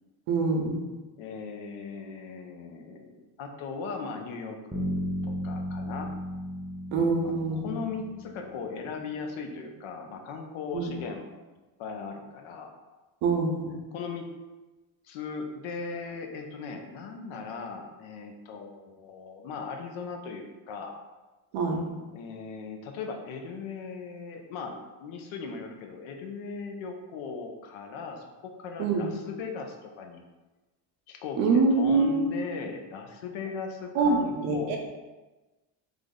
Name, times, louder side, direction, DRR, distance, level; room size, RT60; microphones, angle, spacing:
voice 1, 0.3-0.8 6.9-7.7 10.7-10.9 13.2-13.8 21.5-21.9 28.8-29.1 31.4-32.4 33.9-34.8, right 4 dB, 90° right, 1 dB, 0.8 m, -25 dB
voice 2, 1.2-6.1 7.2-11.4 11.8-12.7 13.9-14.4 15.0-20.9 22.1-30.2 31.1-34.8, left 5 dB, 80° left, 4 dB, 0.7 m, -38 dB
Bass guitar, 4.7-8.7, equal, 10° right, 0.7 m, -34 dB
3.3 x 2.1 x 3.6 m, 1.2 s
supercardioid pair, 80°, 48 cm